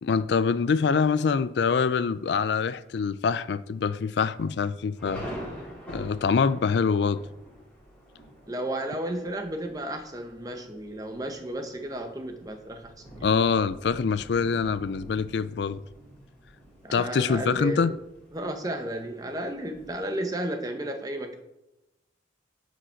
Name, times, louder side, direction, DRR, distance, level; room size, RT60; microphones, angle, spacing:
voice 1, 0.0-5.2 5.9-7.2 13.2-15.8 16.9-17.9, left 5 dB, 70° left, 0.4 m, -25 dB
Thunder, 1.1-1.4 1.9-2.0 2.3-2.7 3.1-3.2 3.9-20.1, equal, 10° left, 3.5 m, -46 dB
voice 2, 8.5-13.3 16.8-18.0 18.3-21.4, right 1 dB, 20° right, 0.8 m, -33 dB
10.0 x 5.2 x 4.5 m
head